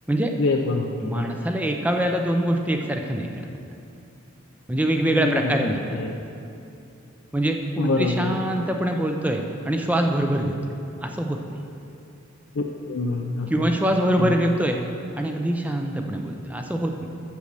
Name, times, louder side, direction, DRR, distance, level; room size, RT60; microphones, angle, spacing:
voice 1, 0.4-1.3 5.1-6.2 7.8-8.4 12.6-13.7 14.2-14.3, left 3 dB, 60° left, 1 dB, 0.5 m, -26 dB
voice 2, 1.0-3.4 4.7-6.0 7.3-10.6 11.0-11.6 13.5-14.8 15.2-17.1, right 1 dB, 5° right, 3 dB, 0.5 m, -24 dB
8.3 x 6.4 x 6.7 m, 2.7 s
head